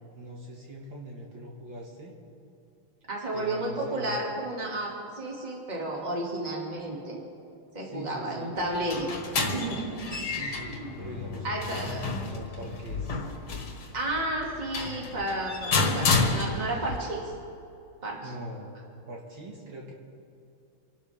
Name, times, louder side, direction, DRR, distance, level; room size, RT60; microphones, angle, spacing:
voice 1, 0.1-2.1 3.3-4.2 7.8-8.5 10.3-13.3 18.2-18.7 19.1-19.9, right 1 dB, 60° right, -2 dB, 2.4 m, -42 dB
voice 2, 3.1-7.2 7.7-9.1 9.5-10.3 10.6-10.9 11.4-12.0 13.9-17.3 18.0-18.3, right 1 dB, 20° right, -2 dB, 2.3 m, -32 dB
sound 1, 8.6-17.0, left 3 dB, 70° left, 2.4 m, -30 dB
sound 2, 10.8-13.9, left 6 dB, 30° left, 0.6 m, -41 dB
26.0 x 12.0 x 3.5 m, 2.6 s
omnidirectional pair, 2.4 m